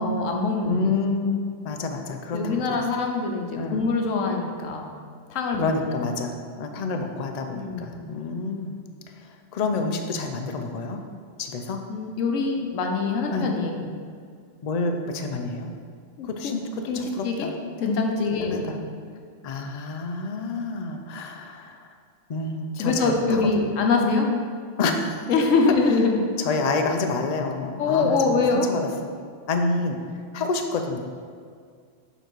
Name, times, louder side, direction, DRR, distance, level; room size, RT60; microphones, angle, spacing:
voice 1, 0.0-0.9 2.3-4.9 5.3-6.1 7.5-8.0 11.9-13.8 16.2-16.5 16.9-17.5 17.8-18.9 22.8-24.3 25.3-26.3 27.8-28.7, left 4 dB, 85° left, 2 dB, 1.1 m, -24 dB
voice 2, 0.7-2.5 3.5-3.8 5.6-6.3 6.6-8.8 9.5-11.0 11.4-11.8 13.3-13.5 14.6-15.7 16.3-17.5 18.4-18.8 19.4-21.8 22.3-23.4 24.8-25.3 26.4-28.4 28.7-28.8 29.5-30.0 30.3-31.0, left 3 dB, 55° left, 5 dB, 0.4 m, -28 dB
6.7 x 3.9 x 4.6 m, 2.1 s
omnidirectional pair, 1.3 m